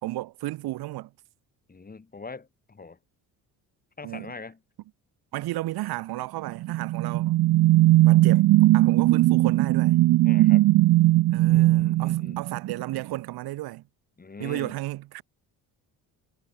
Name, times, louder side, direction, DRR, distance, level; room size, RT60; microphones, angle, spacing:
voice 1, 0.0-1.1 4.0-4.4 5.3-7.3 8.0-10.0 11.3-13.8 14.4-15.2, right 17 dB, 85° right, 2.1 m, -33 dB
voice 2, 1.7-3.0 4.0-4.6 10.2-10.7 11.5-12.4 14.2-14.8, left 4 dB, 25° left, 4.7 m, -42 dB
sound 1, 6.5-13.0, right 17 dB, 55° right, 0.5 m, -19 dB
cardioid pair, 105°, 37 cm